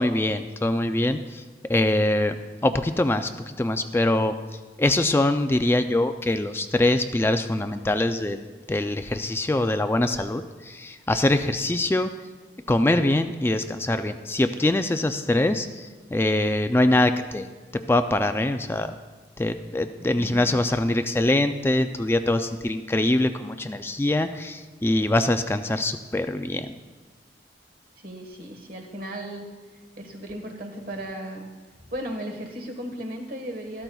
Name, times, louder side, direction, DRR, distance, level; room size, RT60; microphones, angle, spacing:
voice 1, 0.0-1.4 1.7-2.4 2.6-4.3 4.8-12.1 12.7-17.5 17.9-18.9 19.4-26.7, left 1 dB, 15° left, 9 dB, 0.3 m, -23 dB
voice 2, 20.1-20.6 28.0-29.5 30.0-31.5 31.9-33.8, right 1 dB, 50° right, 3 dB, 1.4 m, -36 dB
13.5 x 13.0 x 2.3 m, 1.3 s
head